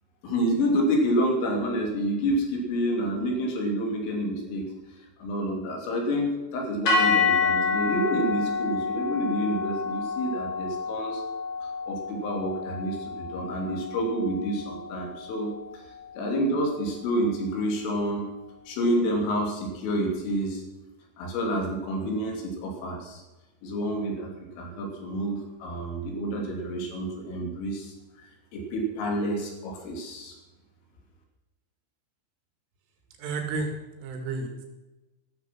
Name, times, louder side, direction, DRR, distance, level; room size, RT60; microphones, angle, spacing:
voice 1, 0.2-4.7 5.2-11.2 11.6-18.3 18.7-20.6 21.2-23.2 23.6-24.3 24.6-27.9 28.5-30.3, equal, 75° left, 1 dB, 5.5 m, -28 dB
sound 1, 6.9-15.1, left 4 dB, 35° left, 3.6 m, -28 dB
voice 2, 33.2-33.7 34.0-34.7, right 3 dB, 75° right, 4 dB, 4.5 m, -31 dB
14.0 x 14.0 x 6.1 m, 1.1 s
omnidirectional pair, 5.9 m